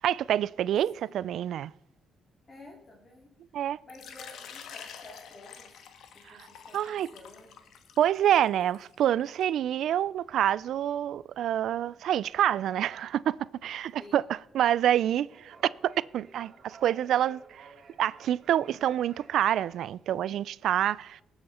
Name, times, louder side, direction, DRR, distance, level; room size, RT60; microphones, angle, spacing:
voice 1, 0.0-1.7 3.5-3.8 6.3-6.5 6.7-7.1 8.0-13.4 13.6-15.6 15.8-17.7 18.0-21.2, right 11 dB, 75° right, 0.3 m, -27 dB
voice 2, 2.5-3.3 3.8-5.8 6.1-7.7 14.0-14.2, left 2 dB, 35° left, 3.1 m, -52 dB
Water / Liquid, 3.9-9.4, left 7 dB, 75° left, 1.3 m, -48 dB
sound 1, 10.2-19.7, right 4 dB, 50° right, 2.6 m, -56 dB
19.5 x 7.8 x 4.3 m
cardioid pair, 90°, 0 cm